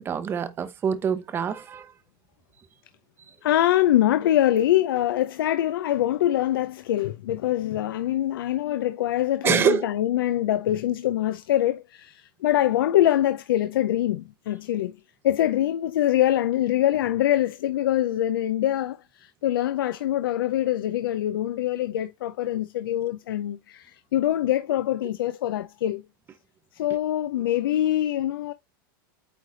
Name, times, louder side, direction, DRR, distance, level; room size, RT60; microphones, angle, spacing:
voice 1, 0.0-1.9 9.4-9.9, right 7 dB, 20° right, 0.7 m, -25 dB
voice 2, 3.4-14.9 15.2-26.0 26.7-28.5, left 13 dB, 90° left, 0.5 m, -24 dB
8.7 x 3.3 x 3.9 m
supercardioid pair, 145°, 11 cm